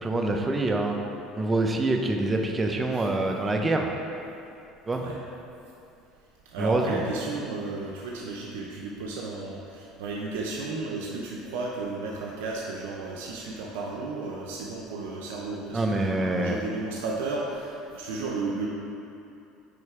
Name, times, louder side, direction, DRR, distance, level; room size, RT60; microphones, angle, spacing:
voice 1, 0.0-0.9 1.4-3.9 4.9-5.0 6.6-7.0 15.7-16.6, right 2 dB, 20° right, 3 dB, 0.7 m, -25 dB
voice 2, 6.5-18.7, right 3 dB, 90° right, -3 dB, 0.7 m, -33 dB
9.2 x 3.2 x 4.8 m, 2.7 s
supercardioid pair, 110°, 0 cm